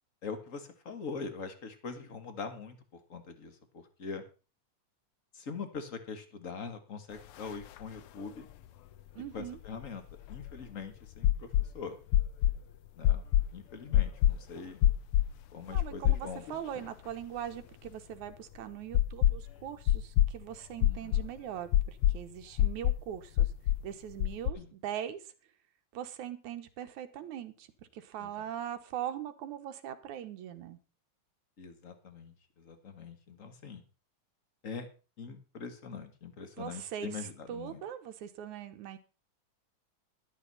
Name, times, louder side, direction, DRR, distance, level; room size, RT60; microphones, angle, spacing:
voice 1, 0.2-2.8 3.1-4.2 5.3-8.5 9.3-10.0 10.3-12.0 13.0-13.2 13.5-14.8 15.5-16.4 20.8-21.2 24.5-24.7 28.2-28.4 31.6-33.8 34.6-34.9 35.2-37.8, left 5 dB, 35° left, 8 dB, 1.5 m, -43 dB
sound 1, 7.4-7.5 7.8-7.9 9.4-10.6 11.2-11.7 12.1-12.6 13.0-13.5 13.9-14.4 14.8-15.3 15.8-16.5 16.8-16.9 18.9-19.5 19.9-20.3 20.8-21.3 21.7-22.2 22.6-23.0 23.4-23.8 24.2-24.5, left 12 dB, 85° left, 1.2 m, -26 dB
voice 2, 9.2-9.6 15.7-23.5 23.8-25.3 25.9-27.7 27.9-30.8 36.6-39.0, right 10 dB, 85° right, 8 dB, 2.6 m, -41 dB
12.5 x 12.0 x 4.1 m, 0.34 s
omnidirectional pair, 3.4 m